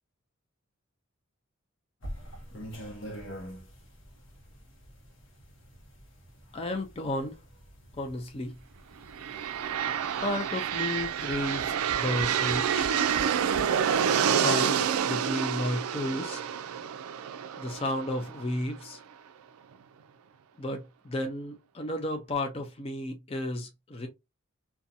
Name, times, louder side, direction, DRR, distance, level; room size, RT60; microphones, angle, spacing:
sound 1, 2.0-14.3, equal, 60° left, 0.8 m, -47 dB
voice 1, 6.5-7.4 8.0-8.6 10.2-12.9 14.3-16.4 17.6-19.0 20.6-24.1, left 1 dB, 25° left, 0.4 m, -33 dB
sound 2, 9.1-18.9, right 8 dB, 85° right, 0.3 m, -28 dB
Tap, 10.7-13.8 14.6-14.7 15.0-15.1, right 2 dB, 55° right, 0.7 m, -45 dB
2.5 x 2.2 x 2.6 m
head